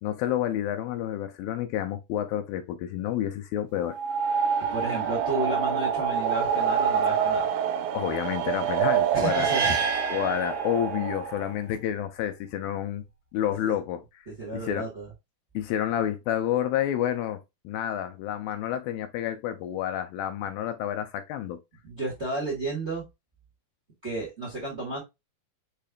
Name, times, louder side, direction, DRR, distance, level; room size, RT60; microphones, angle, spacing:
voice 1, 0.0-4.0 7.9-9.5 10.1-13.0 13.3-14.0 14.5-14.9 15.5-17.4 17.6-21.6, left 11 dB, 80° left, 2.3 m, -29 dB
sound 1, 3.9-11.5, right 7 dB, 80° right, 2.5 m, -27 dB
voice 2, 4.7-7.5 9.1-9.7 13.6-13.7 14.3-15.1 21.8-23.0 24.0-25.0, right 2 dB, 35° right, 1.1 m, -32 dB
sound 2, 9.2-11.3, right 4 dB, 55° right, 2.4 m, -30 dB
6.7 x 3.2 x 2.3 m
omnidirectional pair, 4.4 m